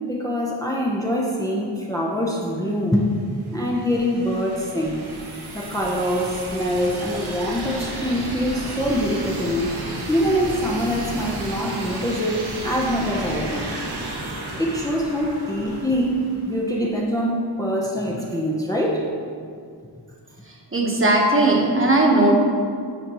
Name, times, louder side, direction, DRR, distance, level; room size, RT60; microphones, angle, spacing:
voice 1, 0.0-3.1 3.5-5.1 5.5-9.7 10.1-13.7 14.6-19.1, equal, 10° left, -3 dB, 0.7 m, -24 dB
sound 1, 3.0-16.7, right 1 dB, 60° right, 1.1 m, -33 dB
voice 2, 20.5-22.4, right 2 dB, 30° right, -2 dB, 1.2 m, -18 dB
9.4 x 5.0 x 3.0 m, 2.2 s
wide cardioid pair, 70°, 44 cm